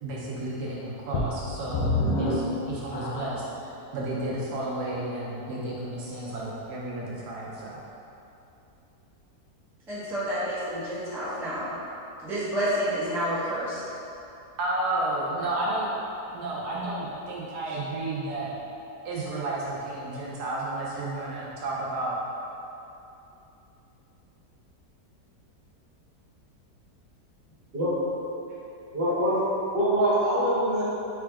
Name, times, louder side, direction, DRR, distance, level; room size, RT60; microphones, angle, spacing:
voice 1, 0.0-7.8 14.6-15.9 16.3-18.5 19.0-22.2, right 2 dB, 75° right, -5 dB, 1.2 m, -32 dB
sound 1, 1.1-3.6 4.2-4.3 4.9-5.0, left 2 dB, 90° left, 1.2 m, -28 dB
voice 2, 9.9-11.7 12.2-13.8, equal, ahead, -11 dB, 0.7 m, -29 dB
voice 3, 28.9-29.3 29.7-30.8, right 1 dB, 35° right, -10 dB, 1.2 m, -24 dB
3.7 x 3.4 x 3.4 m, 2.8 s
omnidirectional pair, 1.8 m